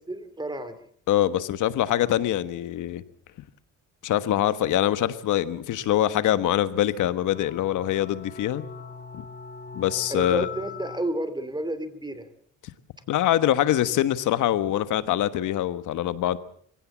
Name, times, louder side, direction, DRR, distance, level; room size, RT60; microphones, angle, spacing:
voice 1, 0.1-0.8 10.1-12.3, right 1 dB, 15° right, 12 dB, 2.8 m, -31 dB
voice 2, 1.1-3.0 4.0-8.6 9.1-9.2 9.7-10.5 13.1-16.4, left 12 dB, 80° left, 13 dB, 1.4 m, -24 dB
sound 1, 7.3-11.0, left 5 dB, 35° left, 1.9 m, -40 dB
23.5 x 16.5 x 7.3 m, 0.62 s
cardioid pair, 90°, 30 cm